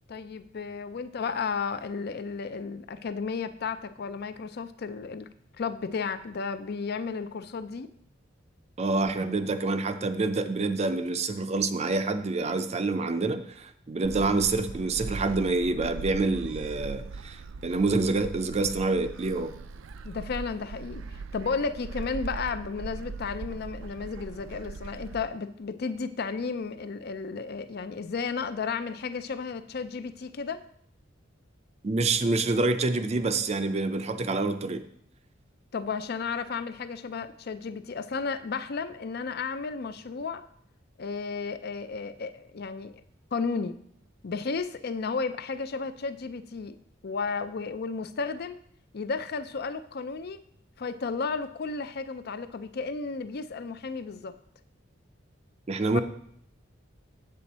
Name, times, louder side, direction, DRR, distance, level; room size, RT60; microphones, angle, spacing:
voice 1, 0.1-5.3 5.6-7.9 20.0-30.6 35.7-40.4 41.0-43.0 43.3-43.8 44.2-46.8 47.0-48.6 48.9-50.4 50.8-54.4, left 5 dB, 55° left, 12 dB, 0.5 m, -33 dB
voice 2, 8.8-19.5 31.8-34.9 55.7-56.0, right 3 dB, 35° right, 9 dB, 0.5 m, -27 dB
Gull seagull, 14.0-25.2, right 4 dB, 90° right, 0.4 m, -40 dB
7.7 x 7.6 x 4.1 m, 0.67 s
head